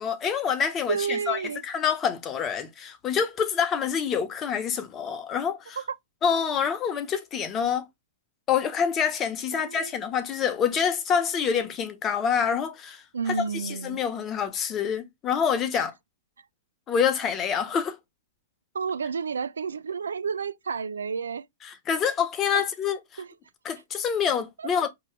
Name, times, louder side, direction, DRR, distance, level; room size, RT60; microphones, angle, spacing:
voice 1, 0.0-5.8 6.2-7.9 8.5-13.4 13.6-15.9 16.9-18.0 21.7-23.0 23.6-24.9, left 7 dB, 25° left, 1.0 m, -26 dB
voice 2, 0.9-1.6 5.8-5.9 9.5-9.9 13.1-14.0 15.7-15.8 18.7-21.4 22.5-22.6 23.2-23.3 24.6-24.7, right 6 dB, 85° right, 0.5 m, -30 dB
5.2 x 3.0 x 3.3 m
hypercardioid pair, 120°, 0 cm